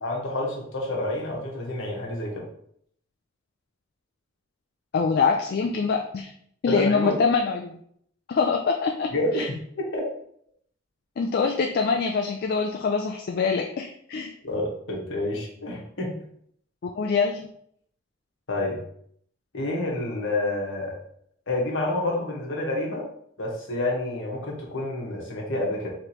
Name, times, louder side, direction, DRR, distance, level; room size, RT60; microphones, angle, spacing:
voice 1, 0.0-2.4 6.7-7.2 9.1-10.0 14.4-16.2 18.5-18.8 19.5-20.9 21.5-23.1 23.4-25.9, left 2 dB, 70° left, -2 dB, 1.3 m, -28 dB
voice 2, 4.9-6.3 6.6-7.8 8.3-9.5 11.2-14.3 16.8-17.5, left 5 dB, 55° left, 2 dB, 0.4 m, -24 dB
4.9 x 3.2 x 3.0 m, 0.67 s
head